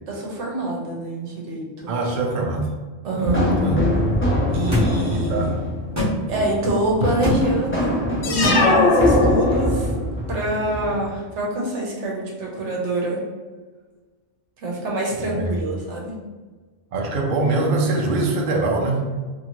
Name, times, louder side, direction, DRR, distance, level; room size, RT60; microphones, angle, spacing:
voice 1, 0.1-1.9 3.0-3.4 4.5-5.6 6.3-8.0 8.3-9.9 10.3-13.2 14.6-16.1, right 1 dB, 75° right, -2 dB, 1.1 m, -25 dB
voice 2, 1.9-2.7 3.2-3.8 5.1-5.5 15.1-15.7 16.9-19.0, right 3 dB, 55° right, 0 dB, 0.6 m, -23 dB
sound 1, 3.2-11.1, left 1 dB, 20° left, 0.3 m, -25 dB
sound 2, 4.7-4.9 5.9-6.1 7.2-7.4 8.4-8.6, equal, 15° right, 0.8 m, -21 dB
sound 3, 8.2-10.1, left 3 dB, 70° left, 0.8 m, -19 dB
2.7 x 2.6 x 2.9 m, 1.3 s
omnidirectional pair, 1.2 m